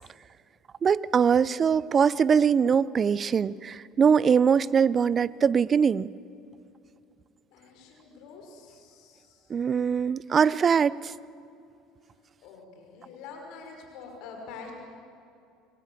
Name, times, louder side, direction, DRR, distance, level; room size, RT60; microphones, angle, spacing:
voice 1, 0.8-6.1 9.5-11.1, right 6 dB, 35° right, 20 dB, 0.6 m, -22 dB
voice 2, 7.5-9.5 12.4-14.7, left 5 dB, 65° left, 2 dB, 5.4 m, -46 dB
26.5 x 23.5 x 7.1 m, 2.6 s
hypercardioid pair, 70°, 0 cm